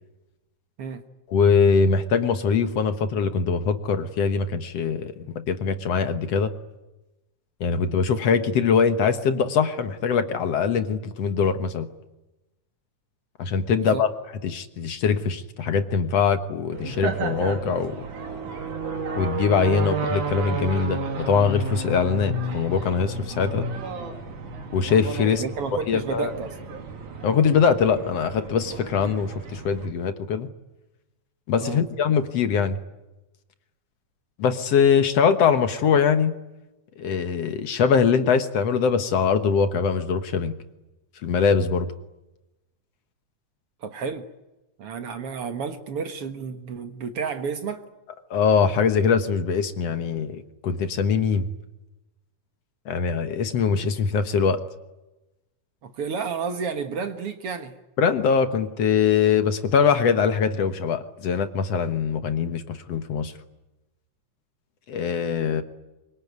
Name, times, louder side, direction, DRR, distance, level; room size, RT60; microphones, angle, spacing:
voice 1, 1.3-6.5 7.6-11.9 13.4-14.1 14.4-18.1 19.2-23.7 24.7-25.4 25.9-26.3 27.2-30.5 31.5-32.8 34.4-36.3 37.0-40.5 41.2-41.9 48.3-51.5 52.9-54.6 58.0-63.3 64.9-65.6, left 6 dB, 60° left, 9 dB, 2.2 m, -22 dB
voice 2, 13.7-14.0 25.3-26.6 31.6-31.8 43.8-44.3 44.8-47.8 55.8-57.7, right 5 dB, 55° right, 8 dB, 2.1 m, -31 dB
sound 1, 16.7-29.9, right 3 dB, 85° right, 4.4 m, -32 dB
24.5 x 23.0 x 9.5 m, 1.0 s
omnidirectional pair, 3.4 m